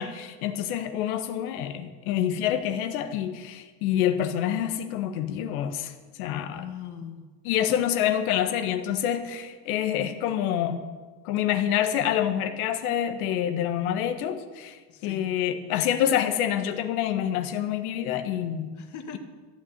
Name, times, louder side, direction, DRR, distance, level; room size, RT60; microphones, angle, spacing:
voice 1, 0.0-5.9 6.2-6.6 7.4-10.8 11.2-18.7, left 10 dB, 90° left, 8 dB, 1.6 m, -27 dB
voice 2, 6.5-7.3 14.9-15.3 18.7-19.2, left 8 dB, 40° left, 5 dB, 1.9 m, -40 dB
14.5 x 9.5 x 8.2 m, 1.4 s
cardioid pair, 135°, 43 cm